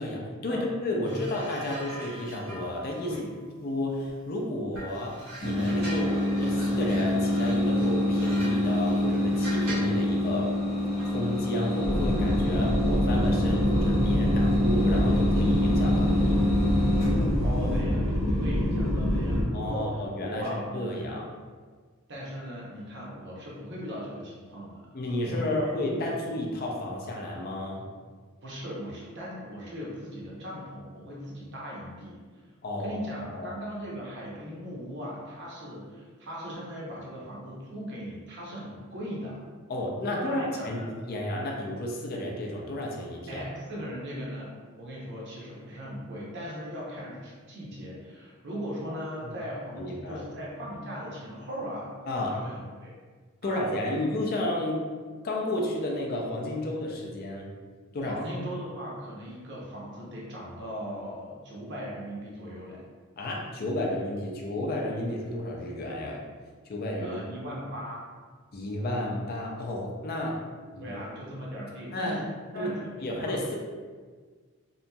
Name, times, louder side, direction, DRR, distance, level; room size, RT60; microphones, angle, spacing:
voice 1, 0.0-3.1 3.6-10.5 11.1-16.2 19.5-20.4 20.7-21.2 24.9-27.9 32.6-33.0 33.3-33.6 39.7-43.5 49.2-49.3 49.8-50.2 52.1-52.4 53.4-54.9 55.2-57.5 57.9-58.1 63.2-66.2 66.7-67.2 68.5-70.4 70.7-71.0 71.9-72.3 72.5-72.7 73.0-73.6, left 1 dB, 45° left, -1 dB, 0.4 m, -32 dB
sound 1, 1.0-4.3 4.7-10.0 11.0-11.2, right 1 dB, 90° right, 1.1 m, -43 dB
sound 2, 5.4-17.8, left 1 dB, 30° left, 1.1 m, -26 dB
sound 3, 11.8-19.4, equal, ahead, 0.7 m, -26 dB
voice 2, 17.1-21.2 22.1-24.8 25.2-26.0 28.4-32.2 32.7-39.4 40.1-40.9 43.3-51.9 52.3-52.9 53.4-53.6 57.9-62.8 67.0-68.0 70.8-72.3 72.5-73.4, equal, 55° right, -5 dB, 0.7 m, -39 dB
2.8 x 2.5 x 2.2 m, 1.5 s
head